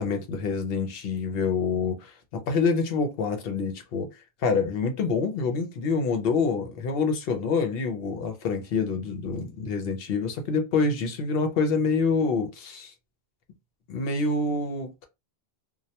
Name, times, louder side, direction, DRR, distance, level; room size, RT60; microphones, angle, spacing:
voice 1, 0.0-4.1 4.4-12.9 13.9-15.1, left 4 dB, 70° left, 0.8 m, -26 dB
2.2 x 2.1 x 2.7 m
omnidirectional pair, 1.0 m